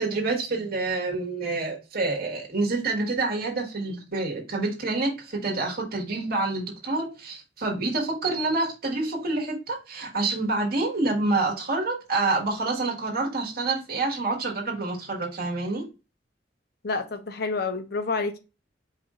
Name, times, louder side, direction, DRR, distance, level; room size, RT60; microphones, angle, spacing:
voice 1, 0.0-15.8, right 3 dB, 55° right, 1.5 m, -27 dB
voice 2, 16.8-18.4, left 4 dB, 60° left, 0.7 m, -28 dB
4.9 x 2.5 x 4.1 m
head